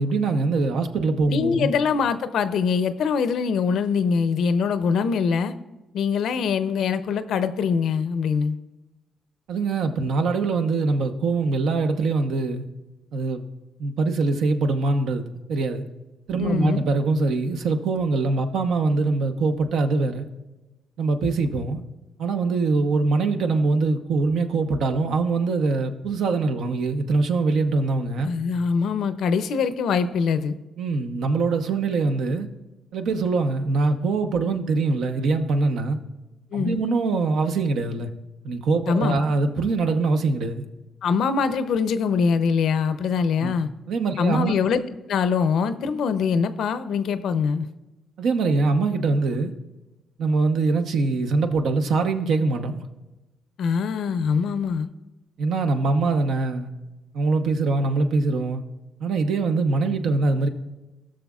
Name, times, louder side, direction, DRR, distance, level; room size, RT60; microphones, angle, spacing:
voice 1, 0.0-1.7 9.5-12.6 13.1-13.4 13.8-15.2 15.5-15.8 16.3-20.3 21.0-21.8 22.2-28.3 30.8-32.5 32.9-36.0 36.5-38.1 38.4-40.6 43.4-43.5 43.9-44.5 48.2-49.5 50.2-52.8 55.4-56.7 57.1-58.6 59.0-60.5, right 3 dB, 75° right, 7 dB, 0.8 m, -23 dB
voice 2, 1.3-5.5 5.9-8.6 16.4-16.8 28.2-30.6 36.5-36.8 38.9-39.3 41.0-43.7 44.2-44.8 45.1-47.7 53.6-54.9, left 6 dB, 70° left, 12 dB, 0.5 m, -23 dB
18.5 x 6.3 x 2.4 m, 1.1 s
cardioid pair, 90°, 0 cm